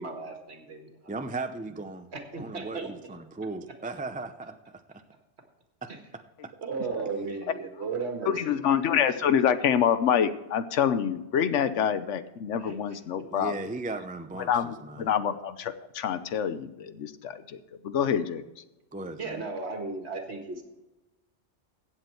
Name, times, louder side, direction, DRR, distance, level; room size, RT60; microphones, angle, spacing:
voice 1, 0.0-1.1 2.1-2.9 5.9-6.0 6.6-8.6 12.6-12.8 13.1-13.2 19.2-20.6, right 4 dB, 65° right, 4 dB, 2.0 m, -35 dB
voice 2, 1.1-2.1 2.4-4.6 8.2-8.3 13.3-14.5 14.8-15.1 18.9-19.5, right 3 dB, 10° right, 8 dB, 0.5 m, -36 dB
voice 3, 8.3-13.5 14.5-18.4, left 8 dB, 85° left, 12 dB, 1.1 m, -26 dB
15.5 x 7.9 x 4.5 m, 1.0 s
omnidirectional pair, 1.2 m